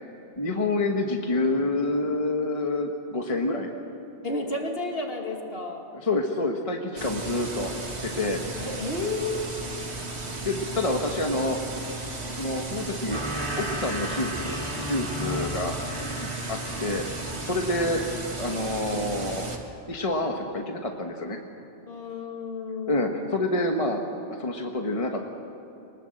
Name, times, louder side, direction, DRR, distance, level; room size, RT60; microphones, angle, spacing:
voice 1, 0.4-3.7 6.0-7.7 8.0-8.4 10.4-11.6 12.4-13.2 13.6-15.7 16.2-17.1 17.4-18.0 18.4-19.5 19.9-21.4 22.9-24.0 24.3-25.3, left 2 dB, 30° left, 2 dB, 1.4 m, -27 dB
voice 2, 4.2-5.9 8.6-9.5 15.2-15.5 17.7-17.9 18.1-18.2 21.9-23.4, left 2 dB, 60° left, 2 dB, 2.7 m, -32 dB
sound 1, 7.0-19.6, right 2 dB, 70° right, 2.3 m, -35 dB
sound 2, 13.1-18.9 19.2-19.7, right 1 dB, 25° right, 2.6 m, -36 dB
23.5 x 20.0 x 7.8 m, 2.9 s
omnidirectional pair, 1.2 m